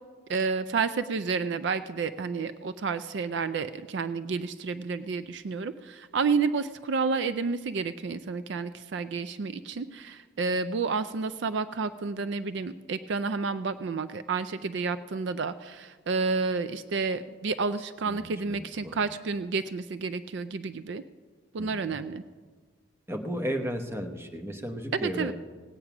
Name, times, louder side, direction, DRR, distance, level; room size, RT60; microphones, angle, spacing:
voice 1, 0.3-21.0 21.5-22.2 24.9-25.3, right 4 dB, 60° right, 13 dB, 0.4 m, -30 dB
voice 2, 18.1-19.0 21.6-22.0 23.1-25.3, equal, 10° right, 4 dB, 0.9 m, -34 dB
17.5 x 8.8 x 5.9 m, 1.5 s
head